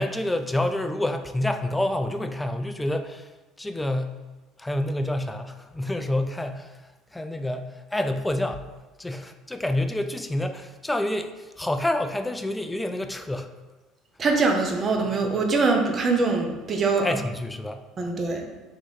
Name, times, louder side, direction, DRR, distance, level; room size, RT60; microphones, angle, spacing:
voice 1, 0.0-3.3 3.6-4.2 4.6-6.8 7.1-8.7 9.0-13.5 17.0-17.8, left 1 dB, 10° left, 7 dB, 0.3 m, -28 dB
voice 2, 14.2-17.2 18.0-18.4, right 3 dB, 35° right, 2 dB, 0.7 m, -23 dB
3.6 x 2.9 x 4.1 m, 1.2 s
supercardioid pair, 100°, 0 cm